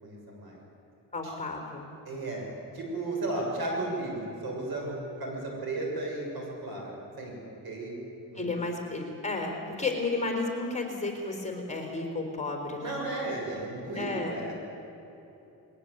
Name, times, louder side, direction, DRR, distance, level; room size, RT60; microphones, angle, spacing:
voice 1, 0.0-0.6 1.2-1.3 2.0-2.4 2.7-7.9 8.3-8.6 12.8-14.5, right 2 dB, 65° right, -1 dB, 6.7 m, -34 dB
voice 2, 1.1-1.9 8.3-13.0 13.9-14.4, left 3 dB, 15° left, 2 dB, 4.0 m, -32 dB
21.0 x 18.5 x 8.2 m, 3.0 s
cardioid pair, 95°, 39 cm